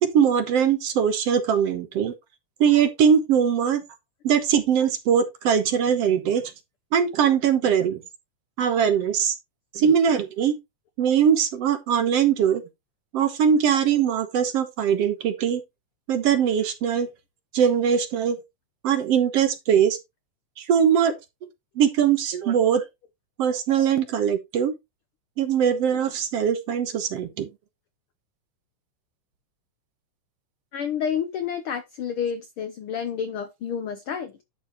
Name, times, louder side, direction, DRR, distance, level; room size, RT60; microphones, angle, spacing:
voice 1, 0.0-2.1 2.6-3.8 4.2-6.5 6.9-8.0 8.6-9.3 9.7-10.6 11.0-12.6 13.1-15.6 16.1-17.1 17.5-18.4 18.8-20.0 20.6-21.1 21.8-22.8 23.4-24.7 25.4-27.5, right 8 dB, 60° right, 1.9 m, -21 dB
voice 2, 30.7-34.4, left 7 dB, 85° left, 1.2 m, -29 dB
11.0 x 6.9 x 3.0 m
omnidirectional pair, 3.5 m